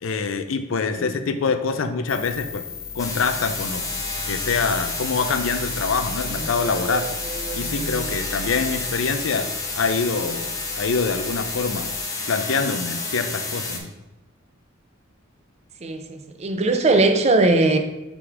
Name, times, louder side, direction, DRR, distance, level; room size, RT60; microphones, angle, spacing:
voice 1, 0.0-2.7 2.9-3.9 4.3-7.1 7.6-9.5 9.8-11.9 12.3-13.9, left 4 dB, 80° left, 0.5 m, -25 dB
sound 1, 2.1-12.0, left 3 dB, 50° left, 1.4 m, -37 dB
sound 2, 3.0-13.8, left 3 dB, 15° left, 0.9 m, -30 dB
sound 3, 6.2-8.7, right 2 dB, 65° right, 1.1 m, -35 dB
voice 2, 15.8-17.8, right 2 dB, 30° right, 0.5 m, -19 dB
6.0 x 3.9 x 4.7 m
head